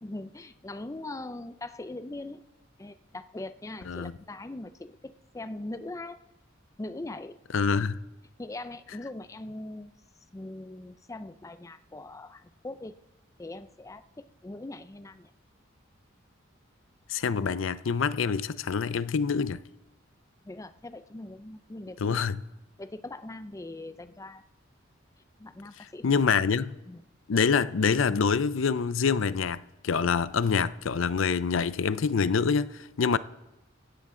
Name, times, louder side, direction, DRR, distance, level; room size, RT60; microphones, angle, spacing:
voice 1, 0.0-2.4 2.8-6.2 6.8-7.4 8.4-9.9 10.3-12.9 13.4-15.3 20.4-22.2 22.8-24.4 25.4-26.2 26.9-27.0, left 2 dB, 15° left, 0.5 m, -41 dB
voice 2, 7.5-8.0 17.1-19.6 22.0-22.4 26.0-26.8 27.3-33.2, left 5 dB, 75° left, 0.5 m, -26 dB
18.0 x 15.5 x 3.8 m
head